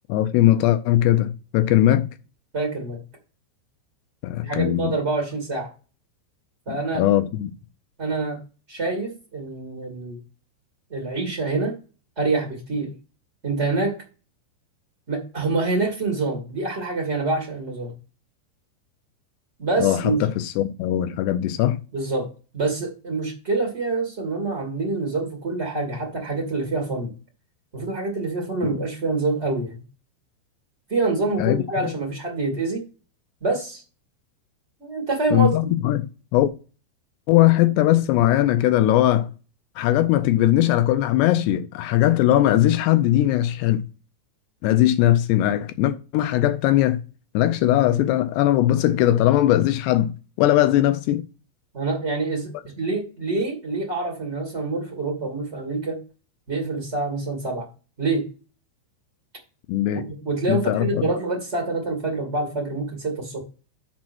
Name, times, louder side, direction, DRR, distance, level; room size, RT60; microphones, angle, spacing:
voice 1, 0.1-2.1 4.2-4.9 6.7-7.5 19.8-21.8 31.4-31.9 35.3-36.1 36.3-36.5 37.3-39.3 39.8-43.8 44.6-47.0 47.3-51.2 59.7-60.1 60.5-61.1, left 13 dB, 85° left, 2.4 m, -20 dB
voice 2, 2.5-3.0 4.4-5.7 6.6-7.0 8.0-8.4 8.7-10.2 10.9-11.8 12.2-12.9 13.4-13.9 15.1-17.9 19.6-20.2 21.9-22.3 22.5-27.1 27.7-29.7 30.9-32.8 33.4-33.8 34.8-35.7 51.7-52.5 52.8-56.0 56.5-57.7 58.0-58.2 59.9-63.4, right 3 dB, 85° right, 0.6 m, -26 dB
7.4 x 5.2 x 6.0 m
omnidirectional pair, 5.4 m